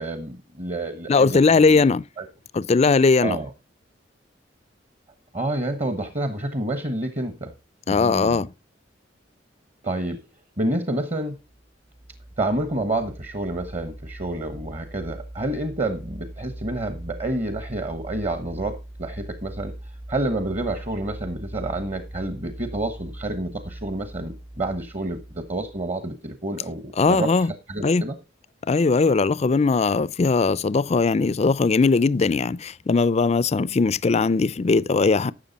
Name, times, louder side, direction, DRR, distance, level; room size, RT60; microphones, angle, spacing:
voice 1, 0.0-1.8 2.2-2.3 3.2-3.5 5.3-7.5 7.9-8.4 9.8-10.2 10.6-11.4 12.4-19.7 20.1-28.2, right 2 dB, 35° right, 1.2 m, -29 dB
voice 2, 1.1-2.0 2.5-3.4 7.9-8.5 27.0-27.5 27.8-28.0 28.7-35.3, left 4 dB, 35° left, 0.4 m, -19 dB
sound 1, 11.5-25.9, right 1 dB, 20° right, 0.5 m, -40 dB
12.5 x 7.5 x 4.0 m
head